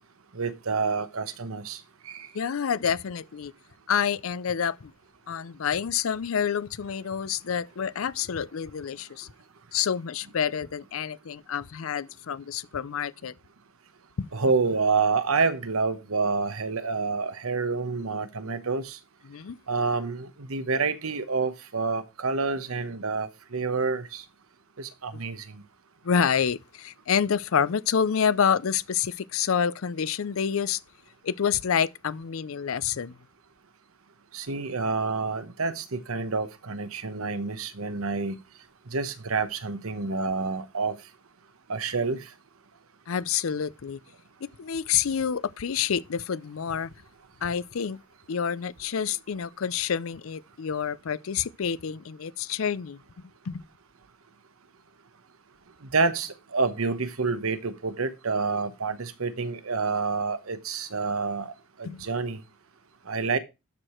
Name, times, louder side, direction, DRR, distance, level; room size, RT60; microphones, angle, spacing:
voice 1, 0.3-1.8 2.1-2.3 14.3-19.0 19.7-24.2 24.8-25.4 34.3-38.4 38.9-40.9 41.7-42.2 55.9-61.5 61.8-62.4 63.1-63.4, right 4 dB, 80° right, 1.0 m, -28 dB
voice 2, 2.3-3.5 3.9-4.9 5.3-9.3 9.7-13.3 14.2-14.3 19.2-19.6 25.1-25.2 26.0-30.8 31.2-33.2 43.1-44.0 44.4-46.9 47.4-48.0 48.3-53.0 53.5-53.6 61.8-62.1, left 7 dB, 70° left, 0.5 m, -28 dB
12.5 x 4.9 x 4.4 m
head